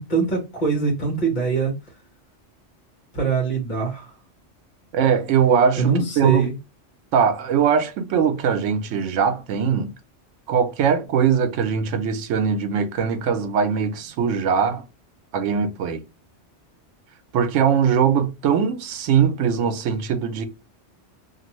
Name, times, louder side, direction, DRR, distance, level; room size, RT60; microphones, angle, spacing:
voice 1, 0.0-1.7 3.1-4.1 5.8-6.5, right 4 dB, 40° left, 1.1 m, -23 dB
voice 2, 4.9-6.5 7.1-9.9 10.5-14.8 15.3-16.0 17.3-20.5, right 7 dB, 90° right, 0.9 m, -21 dB
2.5 x 2.5 x 3.0 m
omnidirectional pair, 1.2 m